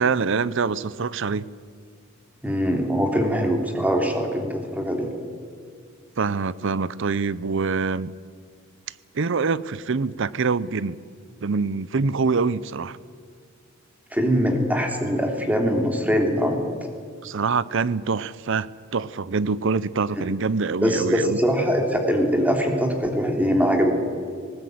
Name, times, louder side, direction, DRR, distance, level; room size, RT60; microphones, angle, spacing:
voice 1, 0.0-1.4 6.2-8.1 9.1-11.0 11.4-13.0 17.2-21.4, right 4 dB, 65° right, 19 dB, 0.6 m, -25 dB
voice 2, 2.4-5.1 14.1-16.6 20.2-20.3 20.8-23.9, equal, 5° right, 3 dB, 3.2 m, -22 dB
19.5 x 19.5 x 9.4 m, 2.1 s
head